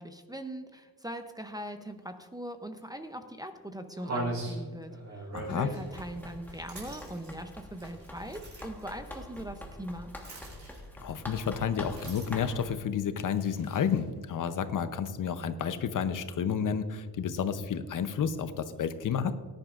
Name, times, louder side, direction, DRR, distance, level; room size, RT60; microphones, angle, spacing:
voice 1, 0.0-10.1, right 1 dB, 10° right, 7 dB, 0.6 m, -41 dB
sound 1, 2.8-2.9 3.4-3.5 4.0-8.8 10.2-11.1 11.8-12.6 13.3-14.1, right 2 dB, 45° right, 3.9 m, -40 dB
voice 2, 5.3-5.7 11.0-19.3, left 7 dB, 55° left, 11 dB, 0.7 m, -31 dB
Run, 5.9-12.8, left 1 dB, 5° left, 1.3 m, -45 dB
18.5 x 10.5 x 2.5 m, 1.5 s
wide cardioid pair, 155°, 37 cm